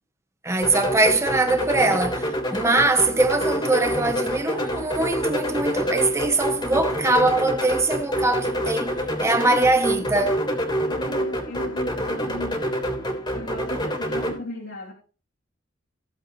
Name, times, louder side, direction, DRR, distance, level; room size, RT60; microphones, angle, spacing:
voice 1, 0.4-8.9 9.2-10.4, right 2 dB, 15° right, 1.4 m, -22 dB
sound 1, 0.6-14.3, equal, 25° left, 3.2 m, -27 dB
voice 2, 10.8-14.9, left 2 dB, 85° left, 2.9 m, -36 dB
16.5 x 8.0 x 3.0 m
head